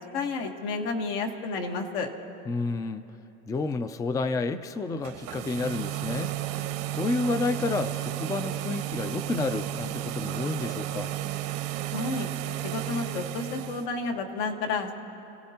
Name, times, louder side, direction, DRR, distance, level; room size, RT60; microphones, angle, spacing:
voice 1, 0.1-2.1 11.9-12.3 12.6-14.9, left 4 dB, 75° left, 3 dB, 1.5 m, -31 dB
voice 2, 2.5-3.0 3.5-11.1, left 3 dB, 10° left, 10 dB, 0.4 m, -30 dB
sound 1, 4.9-13.9, right 13 dB, 75° right, 1.0 m, -33 dB
29.5 x 16.5 x 2.9 m, 2.9 s
cardioid pair, 135°, 31 cm